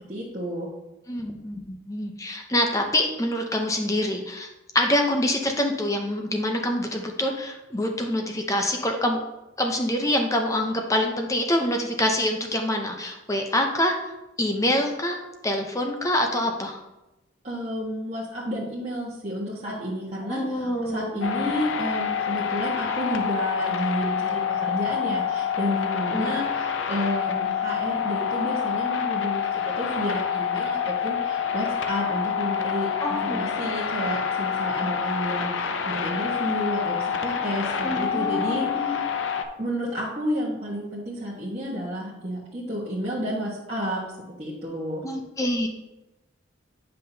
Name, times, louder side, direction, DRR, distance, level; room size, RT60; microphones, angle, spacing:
voice 1, 0.1-0.7 17.4-39.1 39.6-44.0 44.4-45.0, equal, 35° right, -7 dB, 1.3 m, -31 dB
voice 2, 1.1-4.5 4.7-9.2 9.6-14.1 14.4-16.8 20.3-21.5 26.1-26.4 33.0-33.4 37.8-39.0 45.0-45.7, left 1 dB, 15° left, 3 dB, 0.7 m, -26 dB
sound 1, 21.2-39.4, left 7 dB, 75° left, 0.6 m, -27 dB
9.6 x 5.6 x 2.8 m, 0.99 s
head